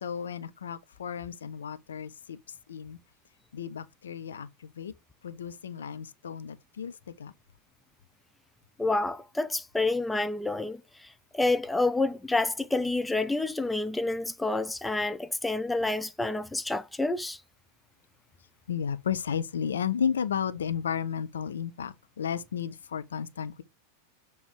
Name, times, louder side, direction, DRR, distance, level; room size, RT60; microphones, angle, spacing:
voice 1, 0.0-2.4 2.7-3.0 3.5-4.9 5.2-6.9 7.2-7.3 18.7-23.6, left 7 dB, 65° left, 0.5 m, -33 dB
voice 2, 8.8-10.8 11.3-17.4, left 2 dB, 5° left, 0.4 m, -28 dB
6.9 x 3.2 x 4.7 m
figure-of-eight pair, 90°, 0 cm